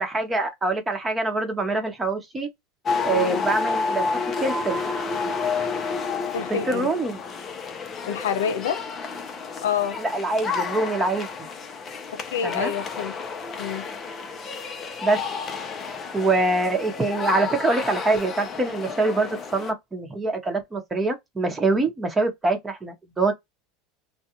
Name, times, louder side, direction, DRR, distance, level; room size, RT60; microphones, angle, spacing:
voice 1, 0.0-2.5 3.0-4.1 4.4-4.8 6.5-7.2 10.0-11.3 12.4-12.7 15.0-15.2 16.1-23.3, right 3 dB, 15° right, 0.9 m, -24 dB
sound 1, 2.9-19.7, left 4 dB, 30° left, 0.6 m, -30 dB
voice 2, 3.1-3.4 6.3-6.9 8.0-8.8 9.6-10.0 12.1-13.2 13.6-13.9, left 7 dB, 90° left, 0.5 m, -27 dB
2.4 x 2.2 x 2.9 m
supercardioid pair, 120°, 0 cm